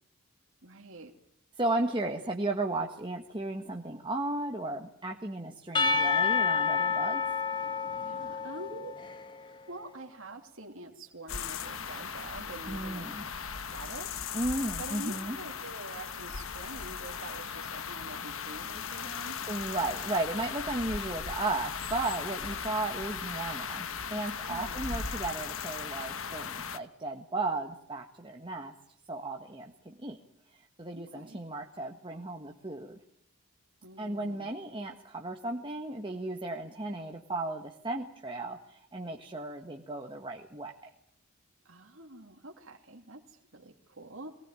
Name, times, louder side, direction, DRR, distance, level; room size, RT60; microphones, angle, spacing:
voice 1, 0.6-1.1 8.0-9.0 9.5-13.3 13.7-14.1 14.8-19.4 24.5-24.8 30.9-31.4 33.8-34.5 41.6-44.4, right 2 dB, 60° right, 2 dB, 2.7 m, -46 dB
voice 2, 1.6-7.2 12.7-13.3 14.3-15.4 19.5-28.7 29.1-30.2 30.8-33.0 34.0-40.9, right 2 dB, 20° right, 2 dB, 1.4 m, -35 dB
Percussion / Church bell, 5.7-9.4, left 5 dB, 20° left, 1.4 m, -29 dB
sound 1, 11.3-26.8, left 6 dB, 60° left, 1.3 m, -38 dB
23.0 x 19.5 x 9.0 m, 0.73 s
head